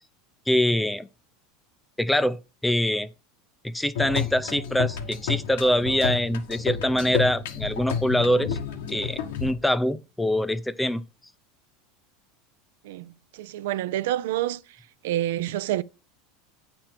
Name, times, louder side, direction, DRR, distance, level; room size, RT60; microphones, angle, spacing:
voice 1, 0.5-1.1 2.0-3.1 3.6-8.6 8.9-11.0, left 1 dB, 5° left, 0.4 m, -24 dB
sound 1, 4.0-9.5, left 7 dB, 90° left, 1.5 m, -30 dB
voice 2, 12.8-14.6 15.0-15.8, right 13 dB, 85° right, 0.5 m, -28 dB
9.0 x 4.5 x 5.9 m
supercardioid pair, 145°, 0 cm